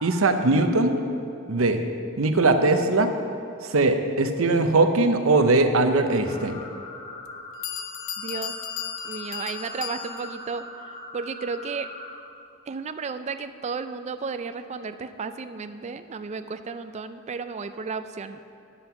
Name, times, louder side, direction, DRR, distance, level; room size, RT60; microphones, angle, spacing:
voice 1, 0.0-0.9 1.5-1.8 2.2-3.1 3.7-6.6, right 2 dB, 75° right, 7 dB, 0.7 m, -20 dB
sound 1, 6.2-12.2, left 2 dB, 30° left, 1.1 m, -41 dB
Bell, 7.3-7.4 7.6-10.4, left 9 dB, 65° left, 0.5 m, -35 dB
voice 2, 8.2-8.6 9.0-11.9 12.7-18.4, right 5 dB, 35° right, 10 dB, 0.4 m, -33 dB
9.8 x 7.6 x 5.7 m, 2.6 s
head